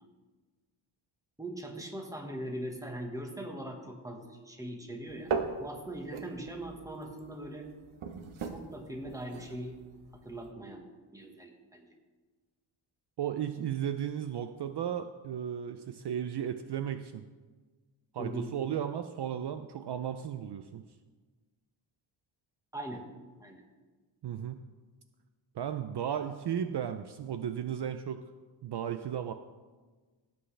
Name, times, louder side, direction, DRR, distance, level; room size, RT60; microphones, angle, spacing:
voice 1, 1.4-5.3 5.6-7.7 8.5-9.8 10.2-11.9 18.2-18.6 22.7-23.1 23.4-23.6, right 1 dB, 5° right, 2 dB, 1.4 m, -41 dB
sound 1, 5.1-10.5, right 4 dB, 75° right, 1.1 m, -40 dB
voice 2, 13.2-17.2 18.1-20.8 24.2-24.6 25.5-28.2 28.6-29.3, right 9 dB, 55° right, 8 dB, 0.6 m, -35 dB
18.0 x 7.9 x 3.3 m, 1.4 s
wide cardioid pair, 130°, 48 cm